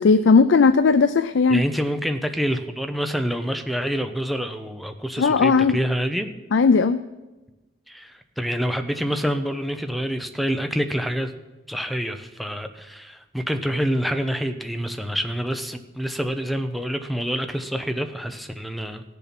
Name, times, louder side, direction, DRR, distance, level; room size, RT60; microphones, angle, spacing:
voice 1, 0.0-1.6 5.2-5.8 6.5-7.0, left 4 dB, 85° left, 11 dB, 0.4 m, -17 dB
voice 2, 1.5-6.3 7.9-11.3 11.7-19.0, equal, ahead, 7 dB, 0.7 m, -27 dB
17.0 x 7.0 x 5.9 m, 1.1 s
head